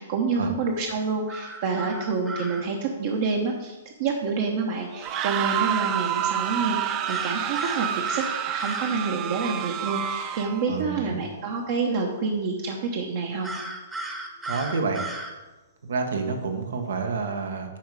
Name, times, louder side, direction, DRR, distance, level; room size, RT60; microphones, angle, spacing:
voice 1, 0.0-13.5, right 4 dB, 50° right, 1 dB, 1.0 m, -28 dB
sound 1, 1.3-2.6 7.1-9.0 13.4-15.3, right 2 dB, 10° right, 1.0 m, -35 dB
sound 2, 4.9-10.7, right 10 dB, 30° right, 0.4 m, -28 dB
voice 2, 10.7-11.2 14.4-15.0 15.8-17.8, right 4 dB, 85° right, 5 dB, 1.4 m, -29 dB
8.9 x 5.5 x 4.8 m, 1.2 s
hypercardioid pair, 150°, 0 cm